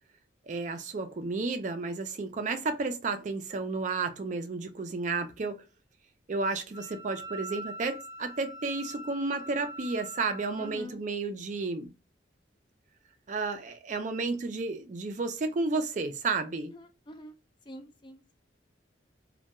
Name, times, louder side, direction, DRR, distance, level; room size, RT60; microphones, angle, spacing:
voice 1, 0.5-5.6 6.3-11.9 13.3-16.7, right 3 dB, 45° right, 0.4 m, -32 dB
Wind instrument woodwind instrument, 6.7-10.8, right 1 dB, 10° right, 0.8 m, -43 dB
voice 2, 10.6-11.0 16.6-17.3 17.7-18.3, equal, 25° left, 0.4 m, -46 dB
2.2 x 2.2 x 2.8 m
head